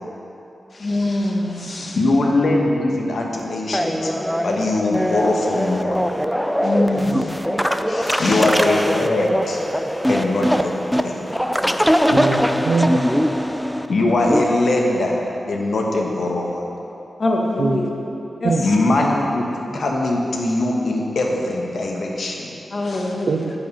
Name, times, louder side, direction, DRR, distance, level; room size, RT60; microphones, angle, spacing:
voice 1, 0.7-2.0 6.6-7.3 7.9-8.4 11.6-11.8 17.2-17.9 18.4-18.7 22.7-23.3, left 2 dB, 55° left, 0 dB, 1.3 m, -24 dB
voice 2, 1.9-4.1 4.4-6.0 8.2-9.6 10.1-10.7 11.0-11.2 13.9-15.2 15.5-16.6 18.6-19.5 19.7-22.6, left 2 dB, 75° left, 0 dB, 1.2 m, -21 dB
sound 1, 3.7-14.5, equal, ahead, 0.5 m, -22 dB
voice 3, 12.1-13.1 17.6-17.8 18.4-18.7 23.3-23.5, right 3 dB, 85° right, 5 dB, 0.6 m, -22 dB
10.5 x 5.1 x 5.7 m, 3.0 s
cardioid pair, 55°, 0 cm